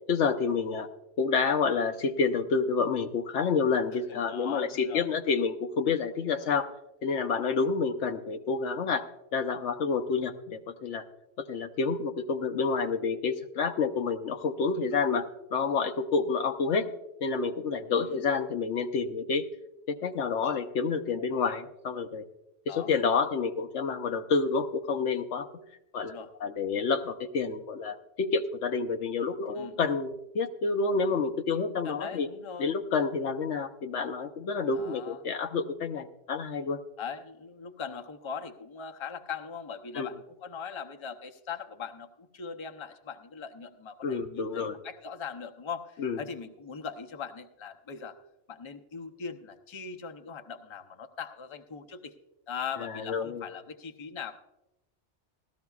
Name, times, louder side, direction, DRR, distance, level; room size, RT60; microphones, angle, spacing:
voice 1, 0.1-0.9 1.2-6.7 7.0-9.1 9.3-11.0 11.4-16.9 17.2-19.4 19.9-22.2 22.7-25.5 25.9-32.3 32.6-36.8 39.9-40.1 44.0-44.8 46.0-46.2 52.8-53.4, left 5 dB, 80° left, 7 dB, 1.1 m, -29 dB
voice 2, 3.9-5.1 14.8-15.0 17.9-18.2 22.7-22.9 26.0-26.3 29.5-29.8 31.8-32.8 34.7-35.2 37.0-48.2 48.5-52.1 52.5-54.4, left 6 dB, 30° left, 5 dB, 0.6 m, -40 dB
17.5 x 13.5 x 2.3 m, 0.93 s
omnidirectional pair, 1.2 m